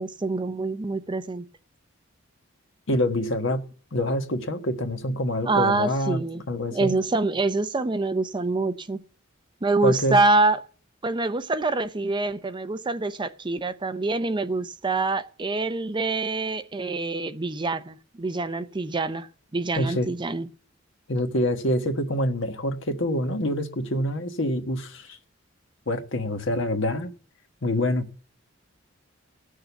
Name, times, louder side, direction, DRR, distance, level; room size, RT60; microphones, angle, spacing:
voice 1, 0.0-1.5 5.4-6.4 6.7-9.0 9.6-10.6 11.0-19.3 19.5-20.5, right 3 dB, 25° right, 0.5 m, -25 dB
voice 2, 2.9-3.6 3.9-6.2 6.5-7.0 9.8-10.2 19.8-20.1 21.1-25.2 25.9-27.1 27.6-28.1, left 1 dB, 65° left, 1.4 m, -26 dB
16.5 x 6.5 x 6.9 m
head